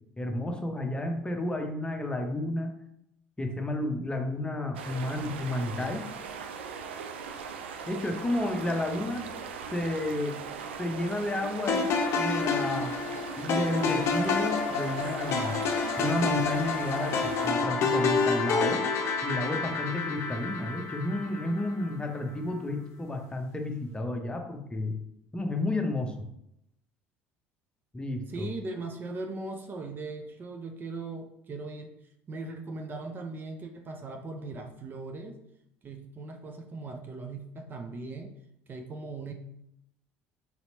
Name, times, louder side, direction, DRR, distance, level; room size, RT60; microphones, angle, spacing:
voice 1, 0.2-2.8 3.4-6.0 7.9-9.2 9.7-10.4 10.8-13.0 13.4-15.6 16.0-18.8 19.2-25.0 25.3-26.1 27.9-28.5, left 1 dB, 15° left, 4 dB, 0.8 m, -31 dB
sound 1, 4.7-17.5, right 6 dB, 75° right, 0.4 m, -39 dB
sound 2, 11.7-21.9, left 4 dB, 50° left, 0.7 m, -29 dB
voice 2, 28.3-31.9 32.3-35.4 35.8-38.3 38.7-39.3, right 3 dB, 35° right, 4 dB, 0.6 m, -39 dB
4.3 x 4.0 x 2.8 m, 0.77 s
figure-of-eight pair, 60°, 6 cm